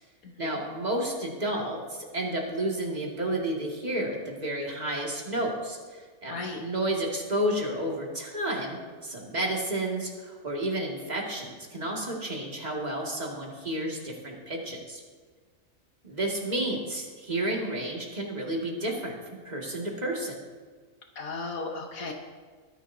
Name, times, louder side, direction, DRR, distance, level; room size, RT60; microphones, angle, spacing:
voice 1, 0.4-8.8 9.0-15.0 16.0-19.2 19.4-20.4, right 1 dB, 25° right, -2 dB, 2.3 m, -31 dB
voice 2, 6.3-6.6 21.2-22.1, left 3 dB, 65° left, 2 dB, 1.4 m, -35 dB
21.5 x 10.0 x 2.8 m, 1.5 s
omnidirectional pair, 1.6 m